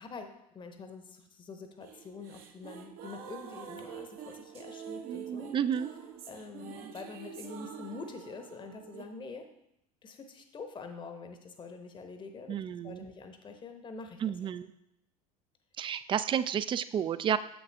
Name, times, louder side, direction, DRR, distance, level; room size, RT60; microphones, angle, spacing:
voice 1, 0.0-5.5 6.3-9.4 10.0-14.5, left 4 dB, 25° left, 6 dB, 0.9 m, -45 dB
sound 1, 1.8-9.0, right 8 dB, 50° right, 0.9 m, -45 dB
voice 2, 5.5-5.9 12.5-13.0 14.2-14.7 15.8-17.4, right 8 dB, 25° right, 14 dB, 0.4 m, -30 dB
7.7 x 6.2 x 3.3 m, 0.81 s
figure-of-eight pair, 70°, 19 cm